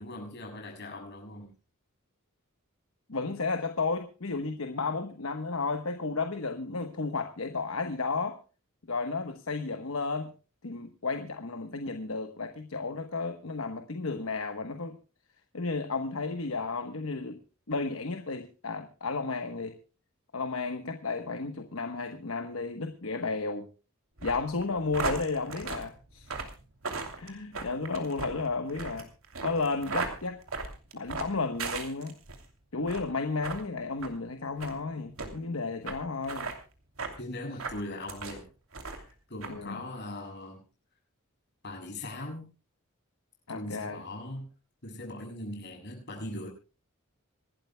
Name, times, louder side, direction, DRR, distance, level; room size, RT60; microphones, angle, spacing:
voice 1, 0.0-1.5 37.2-38.5 38.8-40.6 41.6-42.5 43.5-44.5 44.8-46.5, left 1 dB, 55° left, 7.2 m, -40 dB
voice 2, 3.1-8.4 8.9-10.3 10.6-15.0 15.5-17.4 17.7-19.8 20.3-23.7 24.2-26.3 27.2-29.1 29.4-30.4 30.9-32.1 32.7-36.5 39.5-39.8 43.5-44.0, left 3 dB, 75° left, 1.2 m, -33 dB
sound 1, 24.2-32.4 32.8-33.1 33.4-33.6 34.0-34.1 34.6-34.8 35.2-35.3 35.9-36.0 36.2-36.6 37.0-37.2 37.6-38.4 38.7-39.1 39.4-39.5, right 4 dB, 80° right, 2.8 m, -36 dB
26.0 x 12.5 x 2.3 m
head